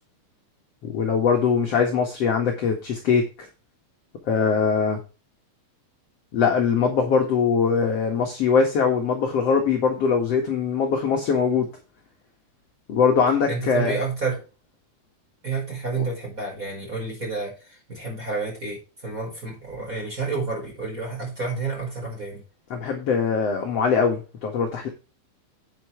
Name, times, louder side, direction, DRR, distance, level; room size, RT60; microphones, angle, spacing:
voice 1, 0.8-3.5 4.3-5.0 6.3-11.7 12.9-14.0 16.0-16.1 22.7-24.9, left 6 dB, 50° left, 1 dB, 2.1 m, -22 dB
voice 2, 13.5-14.4 15.4-22.4, right 4 dB, 20° right, -1 dB, 5.3 m, -30 dB
9.6 x 8.9 x 3.3 m, 0.30 s
omnidirectional pair, 5.1 m